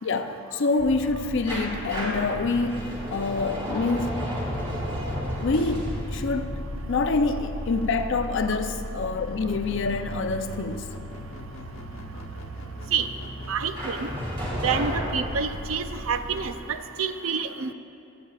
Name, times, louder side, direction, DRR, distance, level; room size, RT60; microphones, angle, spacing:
voice 1, 0.0-4.2 5.4-6.6 6.9-10.9, left 3 dB, 60° left, 0.5 m, -26 dB
sound 1, 0.8-16.5, equal, 85° left, 1.0 m, -37 dB
sound 2, 1.5-8.2 13.7-16.0, equal, 25° right, 2.8 m, -33 dB
voice 2, 13.5-14.1 14.6-17.7, right 6 dB, 75° right, 0.5 m, -28 dB
21.5 x 8.5 x 2.4 m
head